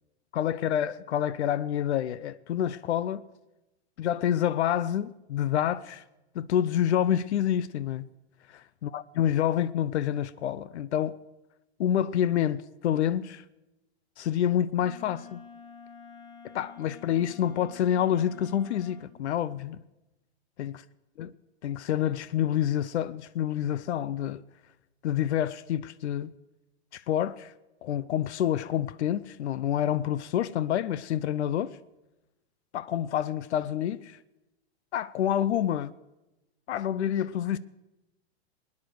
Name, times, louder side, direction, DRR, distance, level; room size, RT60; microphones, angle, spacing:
voice 1, 0.3-3.2 4.0-6.0 6.3-8.1 8.5-11.2 11.8-13.4 14.2-15.4 16.4-19.8 20.6-20.8 21.2-21.3 21.6-24.4 25.0-26.3 26.9-27.5 27.8-31.8 32.7-34.2 34.9-35.9 36.7-37.6, left 10 dB, 85° left, 0.7 m, -28 dB
Wind instrument woodwind instrument, 14.8-19.2, left 5 dB, 35° left, 1.9 m, -49 dB
21.0 x 9.7 x 6.5 m
supercardioid pair, 145°, 33 cm